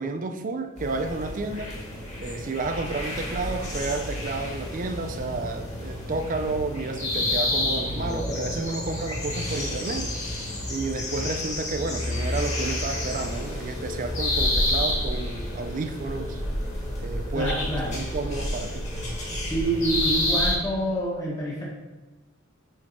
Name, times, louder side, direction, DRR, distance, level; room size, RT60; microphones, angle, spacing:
voice 1, 0.0-1.7 2.2-10.1 10.7-16.4 17.0-17.6 17.9-18.8, right 3 dB, 40° right, 7 dB, 0.5 m, -31 dB
sound 1, 0.8-20.5, left 1 dB, 35° left, 1.6 m, -29 dB
voice 2, 17.3-17.9 19.5-21.6, right 1 dB, 15° left, -6 dB, 1.1 m, -27 dB
6.5 x 4.5 x 4.3 m, 1.2 s
head